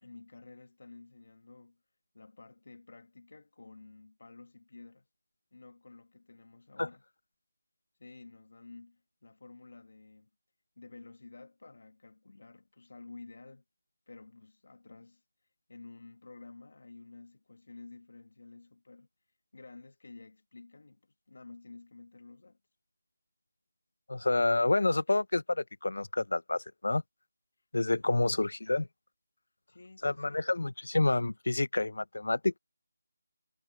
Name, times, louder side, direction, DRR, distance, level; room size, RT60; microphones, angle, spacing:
voice 1, 0.0-1.8 2.1-5.1 5.5-7.0 8.0-10.3 10.8-13.6 14.1-15.2 15.7-19.1 19.5-22.6 28.0-28.4 29.7-30.5, left 3 dB, 60° left, 1.7 m, -52 dB
voice 2, 24.1-27.0 27.7-28.9 30.0-32.6, left 2 dB, 80° left, 0.7 m, -28 dB
figure-of-eight pair, 175°, 0 cm